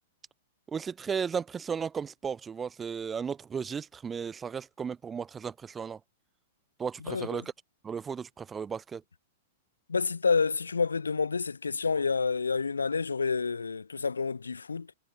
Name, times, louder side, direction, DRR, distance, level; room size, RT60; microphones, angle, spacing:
voice 1, 0.7-6.0 6.8-7.4 7.8-9.0, right 6 dB, 20° right, 0.6 m, -35 dB
voice 2, 7.0-7.4 9.9-14.9, left 5 dB, 85° left, 1.6 m, -29 dB
figure-of-eight pair, 105°, 0 cm